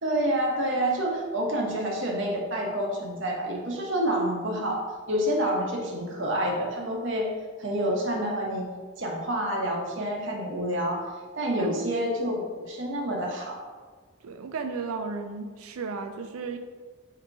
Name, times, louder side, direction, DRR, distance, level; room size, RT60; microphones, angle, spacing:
voice 1, 0.0-4.8 5.1-7.3 7.6-8.6 9.0-11.0 11.3-13.6, right 1 dB, 60° right, -1 dB, 0.8 m, -28 dB
voice 2, 14.2-16.6, right 4 dB, 85° right, 6 dB, 0.4 m, -34 dB
3.9 x 2.8 x 4.5 m, 1.5 s
head